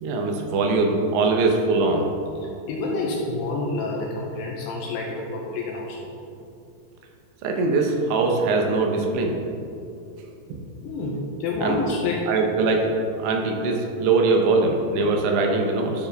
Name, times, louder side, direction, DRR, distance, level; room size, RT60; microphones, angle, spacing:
voice 1, 0.0-2.0 7.4-9.4 11.6-11.8 12.3-12.9 13.2-16.1, right 3 dB, 80° right, 2 dB, 3.0 m, -22 dB
voice 2, 2.7-6.0 10.8-12.3, left 2 dB, 85° left, -1 dB, 2.5 m, -28 dB
12.5 x 4.4 x 3.4 m, 2.6 s
omnidirectional pair, 5.3 m